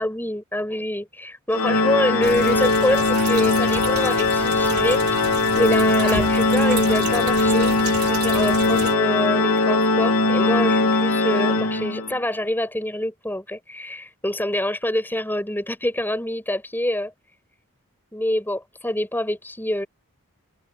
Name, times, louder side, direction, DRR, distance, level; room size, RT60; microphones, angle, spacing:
voice 1, 0.0-5.0 5.6-17.1 18.1-19.9, left 1 dB, 10° left, 7.4 m, -26 dB
Organ, 1.5-12.2, left 3 dB, 80° left, 2.3 m, -20 dB
sound 1, 2.2-9.0, right 4 dB, 90° right, 3.8 m, -32 dB
open air
head